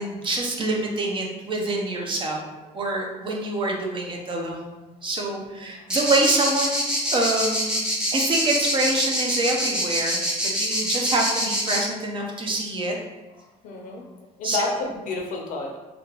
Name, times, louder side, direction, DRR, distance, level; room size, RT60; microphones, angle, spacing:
voice 1, 0.0-2.4 2.7-6.8 7.1-7.8 8.1-12.9 14.4-14.8, right 2 dB, 40° right, 1 dB, 0.7 m, -26 dB
voice 2, 5.4-5.9 13.6-14.1 14.4-15.8, left 3 dB, 75° left, 1 dB, 0.7 m, -31 dB
sound 1, 5.9-11.8, equal, 5° right, 0.9 m, -25 dB
3.4 x 2.4 x 3.0 m, 1.1 s
cardioid pair, 100°, 14 cm